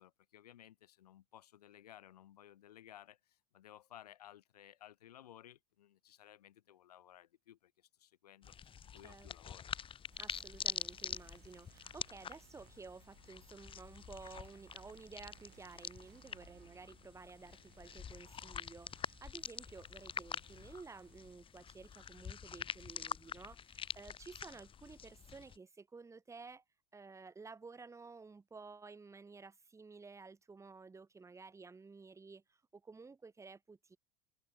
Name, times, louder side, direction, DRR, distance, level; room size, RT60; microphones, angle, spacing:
voice 1, 0.0-9.7, left 12 dB, 80° left, 0.8 m, -58 dB
sound 1, 8.4-25.6, left 8 dB, 25° left, 0.9 m, -46 dB
voice 2, 9.0-9.6 10.2-26.6 26.9-34.0, right 4 dB, 15° right, 1.1 m, -53 dB
sound 2, 10.1-21.4, right 18 dB, 50° right, 2.0 m, -65 dB
hypercardioid pair, 80°, 20 cm